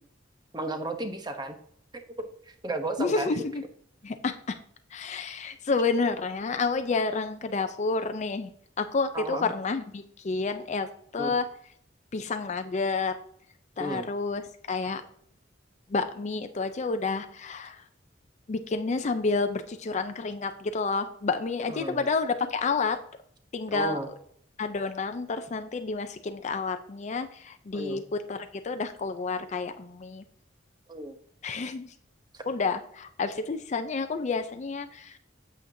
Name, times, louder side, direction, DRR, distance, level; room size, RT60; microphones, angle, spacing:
voice 1, 0.5-1.6 1.9-3.4 9.1-9.5 11.2-11.4 13.8-14.1 21.7-22.0 23.7-24.1 27.7-28.0 30.9-31.1 32.3-32.4, right 1 dB, 25° right, 7 dB, 0.9 m, -34 dB
voice 2, 3.0-3.6 4.0-4.6 4.9-8.5 8.8-10.9 11.1-11.5 12.1-13.1 13.8-14.4 14.7-15.0 15.9-17.8 18.5-23.0 23.5-24.0 24.6-30.2 31.4-31.9 32.5-35.2, left 4 dB, 40° left, 8 dB, 0.5 m, -29 dB
8.4 x 7.1 x 2.7 m, 0.66 s
head